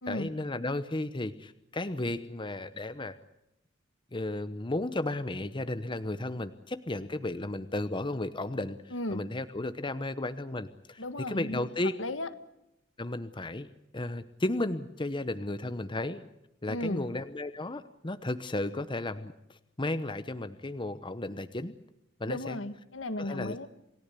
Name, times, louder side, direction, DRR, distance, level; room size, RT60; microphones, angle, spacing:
voice 1, 0.1-3.2 4.1-11.9 13.0-13.7 13.9-16.2 16.6-21.7 22.2-22.6 23.2-23.6, left 2 dB, 25° left, 11 dB, 0.9 m, -34 dB
voice 2, 8.9-9.2 11.0-12.3 16.7-17.0 22.3-23.7, left 1 dB, 70° left, 10 dB, 1.7 m, -35 dB
28.5 x 17.5 x 8.3 m, 0.85 s
head